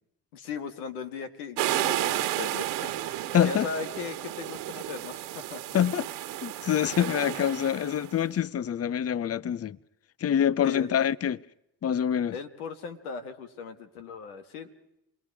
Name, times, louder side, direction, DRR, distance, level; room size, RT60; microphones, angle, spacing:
voice 1, 0.3-5.6 6.6-6.9 10.6-11.0 12.3-14.7, left 5 dB, 90° left, 1.8 m, -38 dB
sound 1, 1.6-8.1, right 14 dB, 80° right, 1.5 m, -32 dB
voice 2, 3.3-3.7 5.7-6.1 6.4-9.8 10.2-11.4 11.8-12.3, left 9 dB, 35° left, 0.7 m, -26 dB
29.0 x 21.5 x 4.8 m
hypercardioid pair, 55°, 43 cm